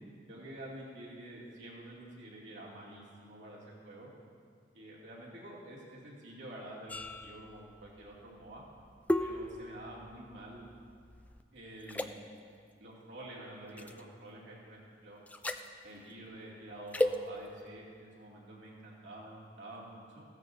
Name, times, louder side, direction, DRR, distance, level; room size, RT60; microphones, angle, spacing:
voice 1, 0.3-4.1 4.7-8.6 9.2-10.7 11.5-12.1 12.8-15.2 15.8-20.2, right 1 dB, 80° right, -5 dB, 2.5 m, -48 dB
sound 1, 6.9-11.4 11.8-12.1 13.8-14.0 15.3-15.7 16.9-17.2, left 1 dB, 10° left, 0.3 m, -35 dB
15.0 x 14.5 x 2.6 m, 2.3 s
head